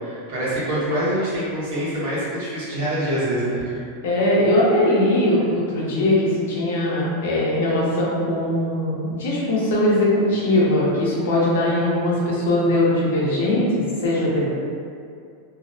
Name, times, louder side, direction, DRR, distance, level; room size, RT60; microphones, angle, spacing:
voice 1, 0.0-3.8, right 1 dB, 55° right, -9 dB, 1.0 m, -25 dB
voice 2, 4.0-14.5, left 1 dB, 85° left, -5 dB, 0.7 m, -20 dB
2.5 x 2.0 x 2.5 m, 2.3 s
supercardioid pair, 175°, 0 cm